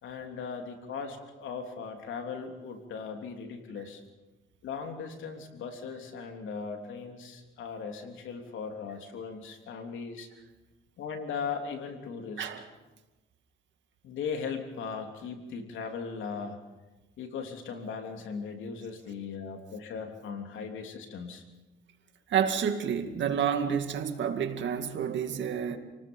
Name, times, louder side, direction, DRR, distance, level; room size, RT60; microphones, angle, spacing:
voice 1, 0.0-4.0 4.6-10.3 11.0-12.5 14.0-16.6 17.2-21.4, left 5 dB, 80° left, 3.2 m, -38 dB
voice 2, 22.3-25.8, right 8 dB, 70° right, 2.2 m, -29 dB
28.5 x 19.0 x 5.5 m
cardioid pair, 90°, 20 cm